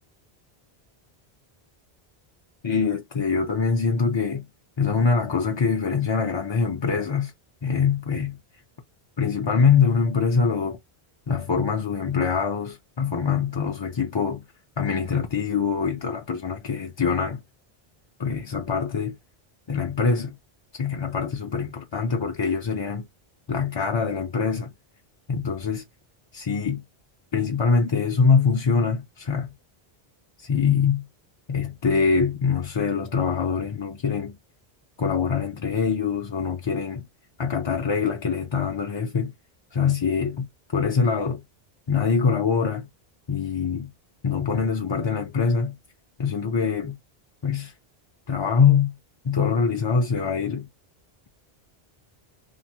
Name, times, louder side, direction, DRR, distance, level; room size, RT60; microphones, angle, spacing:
voice 1, 2.6-4.5 4.8-7.3 7.6-8.4 9.2-10.8 11.3-14.4 14.8-17.4 18.2-19.2 19.7-20.4 20.7-23.0 23.5-24.7 25.3-25.8 26.3-26.8 27.3-29.5 30.4-31.1 31.5-34.4 35.0-37.1 37.4-39.3 39.7-41.4 41.9-42.9 43.3-43.9 44.2-45.8 46.2-47.0 47.4-47.7 48.3-49.0 49.2-50.7, left 5 dB, 40° left, 0.4 m, -24 dB
2.8 x 2.0 x 2.7 m
omnidirectional pair, 1.1 m